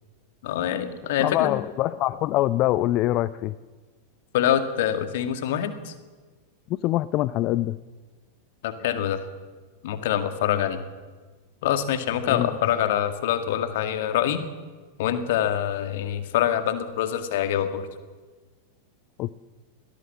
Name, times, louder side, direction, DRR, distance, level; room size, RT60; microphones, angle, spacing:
voice 1, 0.4-1.6 4.3-5.9 8.6-9.2 9.8-10.8 11.6-14.4 15.0-17.9, left 10 dB, 55° left, 9 dB, 2.0 m, -25 dB
voice 2, 1.2-3.5 6.7-7.8 12.3-12.5 19.2-19.3, left 15 dB, 40° left, 17 dB, 0.5 m, -24 dB
21.5 x 18.0 x 7.5 m, 1.4 s
figure-of-eight pair, 90°, 0 cm